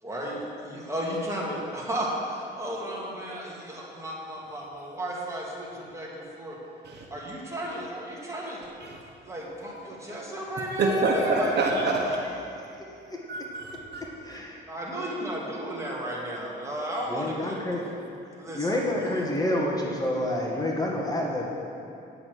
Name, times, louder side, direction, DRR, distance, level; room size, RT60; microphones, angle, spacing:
voice 1, 0.0-6.6 7.1-8.6 9.2-11.7 14.7-17.5 18.4-19.2, equal, 15° right, -4 dB, 2.5 m, -34 dB
voice 2, 10.8-12.2 13.3-14.0, right 3 dB, 55° right, 0 dB, 1.3 m, -26 dB
voice 3, 14.2-14.6 17.1-17.8 18.5-21.4, left 1 dB, 20° left, -2 dB, 1.7 m, -28 dB
8.8 x 7.7 x 6.4 m, 2.7 s
cardioid pair, 90°, 20 cm